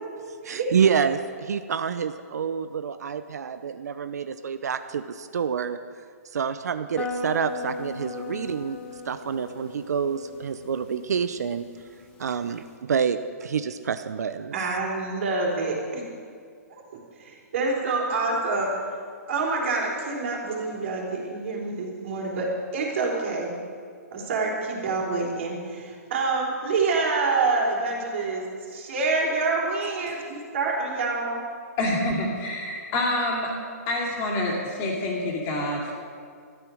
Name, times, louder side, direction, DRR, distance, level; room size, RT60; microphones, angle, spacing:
voice 1, 0.4-5.8 6.3-8.8 9.0-11.7 12.2-14.6, right 7 dB, 80° right, 11 dB, 0.6 m, -27 dB
sound 1, 7.0-12.7, left 4 dB, 10° left, 1.4 m, -38 dB
voice 2, 14.5-16.0 16.7-16.8 17.2-18.8 19.3-23.6 24.1-31.4, right 3 dB, 50° right, -1 dB, 3.5 m, -27 dB
voice 3, 31.8-33.6 33.9-35.9, left 1 dB, 25° left, -1 dB, 2.6 m, -27 dB
13.0 x 10.5 x 6.3 m, 2.1 s
hypercardioid pair, 160°, 9 cm